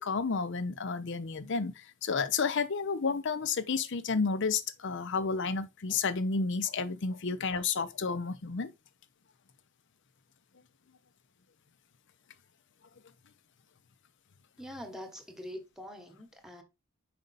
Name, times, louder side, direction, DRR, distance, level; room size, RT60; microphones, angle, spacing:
voice 1, 0.0-8.7, left 5 dB, 55° left, 0.6 m, -31 dB
voice 2, 14.6-16.6, equal, ahead, 1.1 m, -44 dB
5.3 x 5.1 x 4.0 m
head